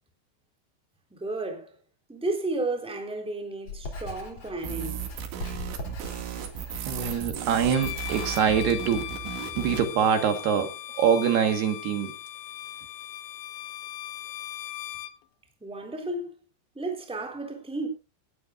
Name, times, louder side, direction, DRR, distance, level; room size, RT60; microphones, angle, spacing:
voice 1, 1.1-1.7 2.1-5.0 15.6-16.3 16.7-17.9, right 2 dB, ahead, 3.1 m, -32 dB
Writing, 3.7-8.7, left 2 dB, 45° left, 4.4 m, -40 dB
sound 1, 4.6-9.9, right 10 dB, 90° right, 4.6 m, -36 dB
voice 2, 6.9-12.1, right 7 dB, 70° right, 3.5 m, -25 dB
Bowed string instrument, 7.7-15.2, left 14 dB, 90° left, 3.4 m, -38 dB
19.5 x 12.5 x 2.5 m
omnidirectional pair, 5.1 m